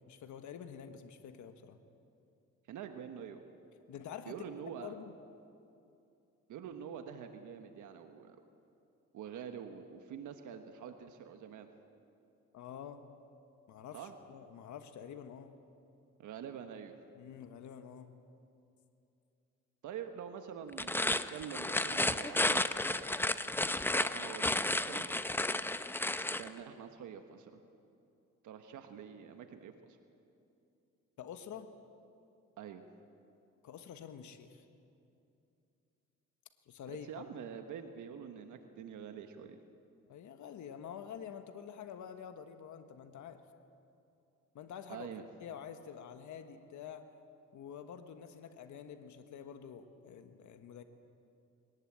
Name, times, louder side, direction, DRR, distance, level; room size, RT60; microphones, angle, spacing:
voice 1, 0.0-1.8 3.9-4.3 4.8-5.1 12.5-13.0 13.7-15.6 17.2-18.1 31.2-31.7 33.6-34.6 36.7-37.2 40.1-43.4 44.5-45.1 45.4-47.1 47.5-50.8, left 8 dB, 75° left, 7 dB, 1.4 m, -48 dB
voice 2, 2.7-3.4 4.3-4.9 6.5-8.4 9.1-11.7 13.9-14.1 16.2-16.9 19.8-23.1 23.9-25.1 26.4-27.6 28.4-30.0 32.6-32.8 36.9-39.6 44.9-45.2, right 8 dB, 80° right, 6 dB, 1.4 m, -46 dB
sound 1, 20.7-26.5, left 1 dB, 5° left, 0.7 m, -32 dB
22.0 x 19.0 x 8.8 m, 2.7 s
cardioid pair, 90°, 30 cm